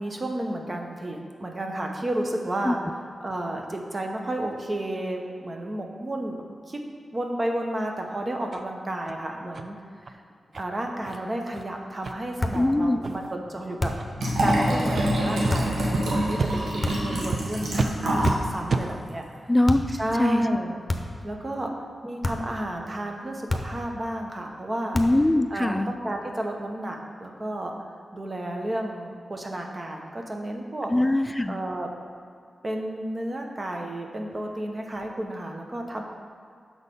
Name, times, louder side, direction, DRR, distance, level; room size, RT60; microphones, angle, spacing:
voice 1, 0.0-6.4 6.7-6.8 7.1-10.2 10.6-13.9 14.4-19.5 20.0-20.8 21.2-21.7 22.0-25.0 25.5-30.9 31.5-31.9 32.6-36.0, right 1 dB, 40° right, 2 dB, 1.0 m, -32 dB
sound 1, 8.5-8.6 9.1-9.2 9.5-9.7 10.0-10.1 10.5-10.6 11.0-11.2 11.5-11.6 12.0-12.1 12.5-12.7 13.0-13.3 13.9-14.1 14.5-14.6 14.9-15.1 15.4-15.5 15.9-16.0 16.4-16.5 16.9-17.0 17.3-17.4 17.7-17.9 18.2-18.3 18.7-18.8, right 4 dB, 60° right, 0.4 m, -29 dB
sound 2, 12.4-12.7 13.8-14.2 15.5-15.8 16.8-17.2 18.2-18.6 19.7-20.0 20.9-21.3 22.2-22.6 23.5-23.9 24.9-25.3, left 2 dB, 35° left, 0.7 m, -29 dB
voice 2, 12.5-13.0 19.5-20.4 24.9-25.9 30.9-31.6, left 1 dB, 20° left, 10 dB, 0.4 m, -22 dB
Liquid, 14.2-18.4 18.7-18.8, equal, 85° right, 1.1 m, -25 dB
6.3 x 4.1 x 5.3 m, 2.3 s
supercardioid pair, 40°, 0 cm